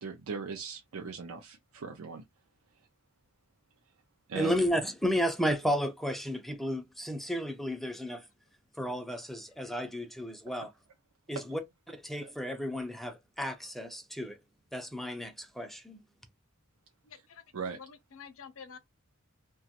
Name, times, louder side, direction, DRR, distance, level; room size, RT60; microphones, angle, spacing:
voice 1, 0.0-2.2 4.3-4.5 11.3-11.4 12.2-12.3 17.5-17.8, right 5 dB, 70° right, 0.5 m, -39 dB
voice 2, 4.4-8.3 8.8-10.7 11.3-11.6 11.9-14.4 14.7-16.0, equal, ahead, 0.4 m, -33 dB
voice 3, 17.0-17.4 17.8-18.8, left 6 dB, 60° left, 0.5 m, -49 dB
2.9 x 2.3 x 2.8 m
head